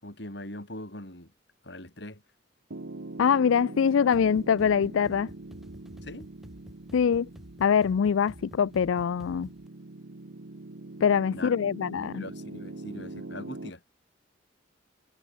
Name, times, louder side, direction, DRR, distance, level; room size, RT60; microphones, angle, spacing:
voice 1, 0.0-1.3 1.6-2.2 6.0-6.3 11.3-11.6 12.1-13.8, left 1 dB, 60° left, 5.3 m, -41 dB
Piano, 2.7-13.7, right 2 dB, 70° right, 1.0 m, -43 dB
voice 2, 3.2-5.3 6.9-7.3 7.6-9.5 11.0-12.2, left 7 dB, 85° left, 0.4 m, -24 dB
sound 1, 4.1-9.7, equal, ahead, 2.3 m, -50 dB
head